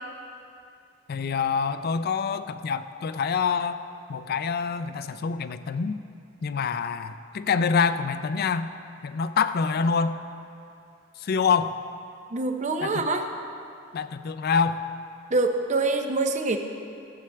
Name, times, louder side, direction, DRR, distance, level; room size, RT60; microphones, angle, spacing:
voice 1, 1.1-3.8 4.1-6.0 6.4-8.7 9.0-10.2 11.2-11.8 12.8-13.1 13.9-14.9, left 5 dB, 50° left, 12 dB, 0.4 m, -26 dB
voice 2, 12.3-13.3 15.3-16.6, right 3 dB, 35° right, 5 dB, 0.7 m, -25 dB
17.0 x 7.8 x 3.4 m, 2.5 s
head